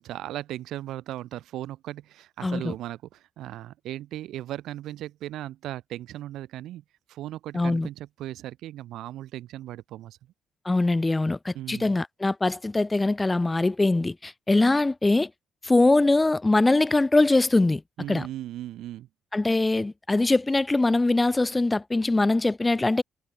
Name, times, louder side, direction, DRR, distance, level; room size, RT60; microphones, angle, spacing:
voice 1, 0.0-10.2 11.5-11.9 18.0-19.1, right 14 dB, 85° right, 4.8 m, -37 dB
voice 2, 2.4-2.7 7.5-7.9 10.7-15.3 15.6-17.8 18.1-18.3 19.3-23.0, left 2 dB, 15° left, 5.4 m, -22 dB
cardioid pair, 90°, 0 cm